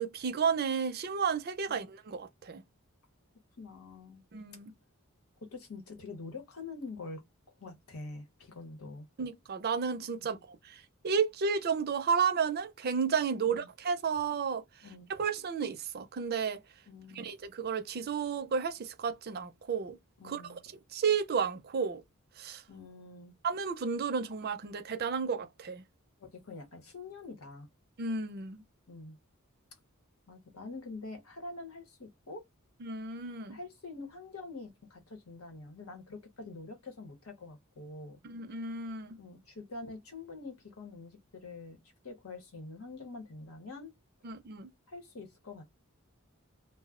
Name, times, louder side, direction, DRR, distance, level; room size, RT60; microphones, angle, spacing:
voice 1, 0.0-2.6 4.3-4.7 9.2-14.6 15.1-16.6 17.1-20.0 20.2-20.6 20.9-22.0 22.4-22.6 23.4-25.8 28.0-28.6 32.8-33.6 38.2-39.2 44.2-44.7, right 6 dB, 45° right, 0.4 m, -32 dB
voice 2, 3.6-4.2 5.5-7.2 7.6-9.1 10.2-10.4 13.4-13.7 14.8-15.1 16.9-17.3 20.2-20.6 22.7-23.3 26.2-27.7 28.9-29.2 30.3-32.4 33.5-38.2 39.2-43.9 44.9-45.6, left 3 dB, 85° left, 0.9 m, -45 dB
2.2 x 2.0 x 3.6 m
head